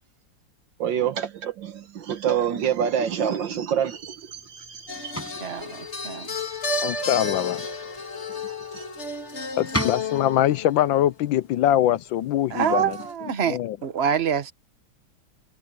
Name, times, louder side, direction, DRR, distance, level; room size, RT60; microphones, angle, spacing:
voice 1, 0.8-5.2 6.9-7.1 8.4-8.8, right 8 dB, 65° right, 1.7 m, -27 dB
sound 1, 3.9-13.1, equal, 5° left, 7.0 m, -39 dB
sound 2, 4.9-10.9 12.9-13.1, left 3 dB, 30° left, 2.7 m, -32 dB
voice 2, 5.2-6.3 12.5-14.5, right 8 dB, 40° right, 1.0 m, -26 dB
voice 3, 6.8-7.6 9.6-13.0 13.5-13.8, left 12 dB, 75° left, 1.3 m, -23 dB
omnidirectional pair, 2.3 m